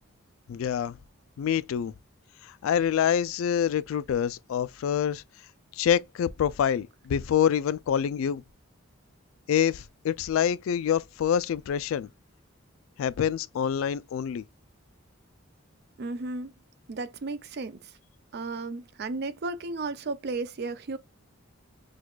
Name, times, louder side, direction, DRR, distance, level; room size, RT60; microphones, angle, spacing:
voice 1, 0.5-1.0 1.4-1.9 2.4-5.2 5.7-8.4 9.5-12.1 13.0-14.4, left 8 dB, 80° left, 0.3 m, -26 dB
voice 2, 16.0-16.5 16.9-18.0 18.3-21.0, right 3 dB, 50° right, 0.4 m, -34 dB
6.1 x 2.4 x 2.3 m
head